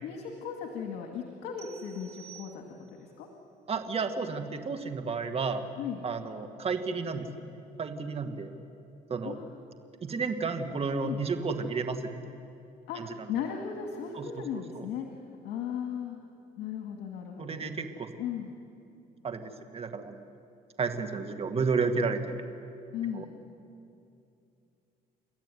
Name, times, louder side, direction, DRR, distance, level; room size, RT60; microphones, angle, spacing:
voice 1, 0.0-2.6 2.9-3.3 5.8-6.0 9.2-9.5 11.0-11.2 12.9-15.1 15.4-16.2 16.6-17.6 18.2-18.5 22.9-23.3, left 8 dB, 85° left, 2 dB, 2.1 m, -36 dB
sound 1, 1.6-3.1, right 11 dB, 70° right, 3.0 m, -52 dB
voice 2, 3.7-5.7 6.0-7.5 7.8-8.5 9.1-9.4 10.0-12.3 13.0-13.1 14.1-14.4 14.8-14.9 17.4-18.1 19.2-20.3 20.8-22.4 23.1-23.3, right 4 dB, 35° right, 7 dB, 2.0 m, -32 dB
30.0 x 13.0 x 9.9 m, 2.6 s
cardioid pair, 110°, 17 cm